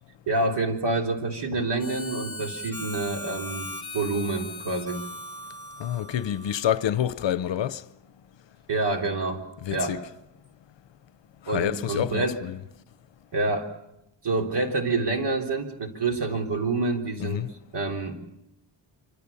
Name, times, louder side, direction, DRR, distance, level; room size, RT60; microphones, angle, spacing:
voice 1, 0.3-3.7 3.9-5.0 8.7-9.4 9.7-10.0 11.5-12.4 13.3-13.7 14.2-17.4 17.7-18.2, right 3 dB, 60° right, 3.6 m, -27 dB
Harmonica, 1.8-7.0, left 1 dB, 10° left, 2.8 m, -39 dB
voice 2, 5.8-7.8 9.6-10.0 11.5-12.6 17.2-17.5, left 10 dB, 70° left, 0.8 m, -28 dB
25.5 x 25.0 x 7.1 m
wide cardioid pair, 160°, 45 cm